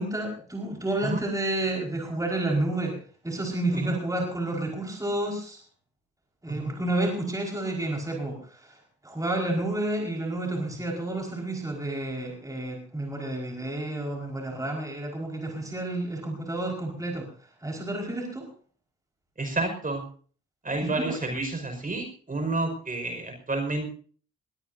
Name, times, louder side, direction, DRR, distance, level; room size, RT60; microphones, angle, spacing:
voice 1, 0.0-3.0 3.2-5.6 6.4-8.8 9.0-17.3 17.6-18.5 20.8-21.2, right 1 dB, 10° right, 0 dB, 4.9 m, -30 dB
voice 2, 19.4-20.0 20.6-23.9, right 2 dB, 25° right, 5 dB, 5.3 m, -30 dB
21.5 x 17.0 x 2.7 m, 0.43 s
cardioid pair, 90°, 30 cm